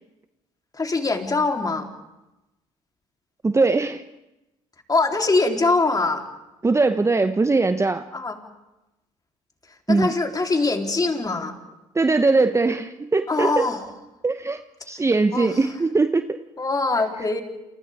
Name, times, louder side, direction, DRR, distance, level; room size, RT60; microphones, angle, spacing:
voice 1, 0.7-1.9 4.9-6.2 8.1-8.4 9.9-11.6 13.3-13.8 15.3-15.5 16.6-17.4, left 3 dB, 25° left, 2 dB, 3.6 m, -22 dB
voice 2, 3.4-4.0 6.6-8.1 9.9-10.1 11.9-13.7 14.2-14.6 14.9-16.4, right 3 dB, 20° right, 9 dB, 0.9 m, -20 dB
29.0 x 28.5 x 3.6 m, 0.97 s
hypercardioid pair, 60°, 15 cm